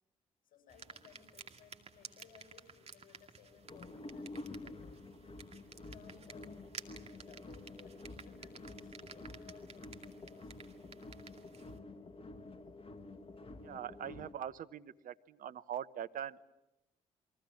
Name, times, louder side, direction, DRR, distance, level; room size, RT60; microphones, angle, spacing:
voice 1, 0.4-5.0 5.8-6.6 7.0-10.6, left 7 dB, 55° left, 6 dB, 7.6 m, -61 dB
sound 1, 0.7-11.8, right 5 dB, 35° right, 2.4 m, -54 dB
sound 2, 3.6-14.3, left 2 dB, 30° left, 2.1 m, -49 dB
voice 2, 13.6-16.5, right 9 dB, 55° right, 13 dB, 1.0 m, -43 dB
29.5 x 22.5 x 7.5 m, 0.92 s
figure-of-eight pair, 45°, 18 cm